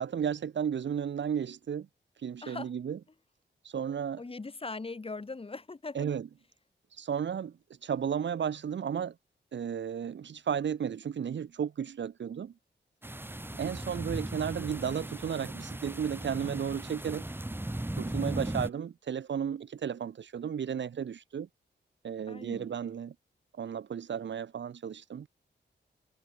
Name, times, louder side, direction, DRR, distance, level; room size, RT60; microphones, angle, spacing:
voice 1, 0.0-1.9 2.2-3.0 3.6-4.2 5.9-6.3 6.9-9.2 9.5-12.5 13.6-17.2 17.9-21.5 22.0-23.1 23.5-25.3, right 8 dB, 75° right, 1.8 m, -34 dB
voice 2, 4.2-6.1 13.5-13.6 22.3-22.7, left 3 dB, 30° left, 3.4 m, -40 dB
sound 1, 13.0-18.7, right 1 dB, 10° right, 4.6 m, -37 dB
wide cardioid pair, 125°, 19 cm